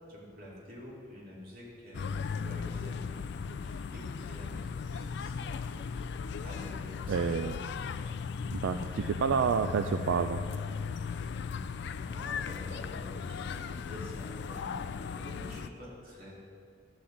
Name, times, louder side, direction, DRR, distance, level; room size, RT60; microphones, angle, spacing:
voice 1, 0.0-6.0 6.4-7.6 8.2-8.5 11.9-14.8 15.1-16.3, left 1 dB, 45° right, -5 dB, 2.3 m, -48 dB
sound 1, 1.9-15.7, left 5 dB, 55° left, 0.3 m, -37 dB
voice 2, 7.1-7.5 8.5-10.4, right 6 dB, 70° right, 8 dB, 0.3 m, -29 dB
11.5 x 8.6 x 3.9 m, 2.3 s
head